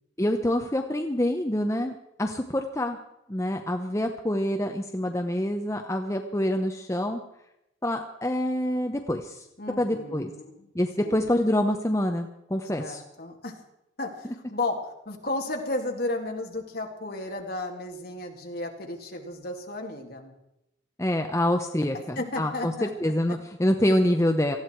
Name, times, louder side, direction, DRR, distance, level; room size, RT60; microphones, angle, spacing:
voice 1, 0.2-3.0 3.3-7.2 7.8-9.5 9.8-10.3 10.7-13.0 21.0-24.6, left 1 dB, 15° left, 4 dB, 0.8 m, -26 dB
voice 2, 9.6-10.7 11.0-11.3 12.8-13.6 14.0-20.3 21.9-22.9, left 2 dB, 50° left, 2 dB, 2.5 m, -33 dB
19.0 x 14.5 x 4.6 m, 0.84 s
head